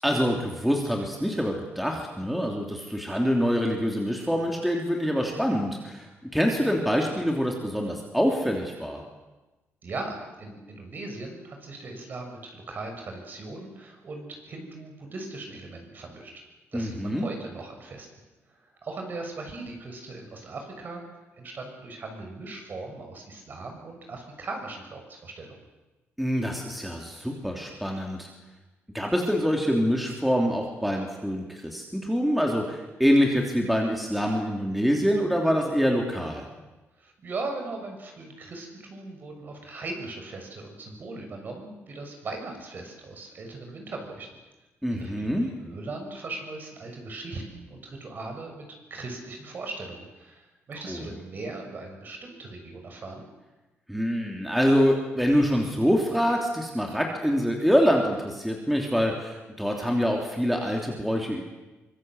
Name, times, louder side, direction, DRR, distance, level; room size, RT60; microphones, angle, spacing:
voice 1, 0.0-9.0 16.7-17.3 26.2-28.3 28.9-36.5 44.8-45.5 50.9-51.1 53.9-61.4, equal, ahead, 1 dB, 3.1 m, -25 dB
voice 2, 9.8-16.3 16.7-18.1 18.5-21.0 21.4-25.6 37.0-44.3 44.9-48.6 48.9-53.2, right 3 dB, 45° right, 3 dB, 6.7 m, -39 dB
24.5 x 23.0 x 8.1 m, 1.1 s
cardioid pair, 140°, 5 cm